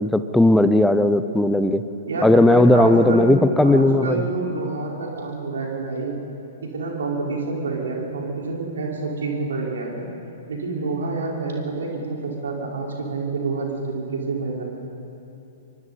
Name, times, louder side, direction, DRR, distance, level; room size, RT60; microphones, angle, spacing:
voice 1, 0.0-1.8 2.2-4.2, left 1 dB, 5° left, 12 dB, 0.8 m, -16 dB
voice 2, 2.1-6.1 6.6-10.1 10.5-14.6, right 3 dB, 65° right, -2 dB, 4.8 m, -28 dB
26.5 x 24.0 x 4.3 m, 3.0 s
figure-of-eight pair, 110°, 0 cm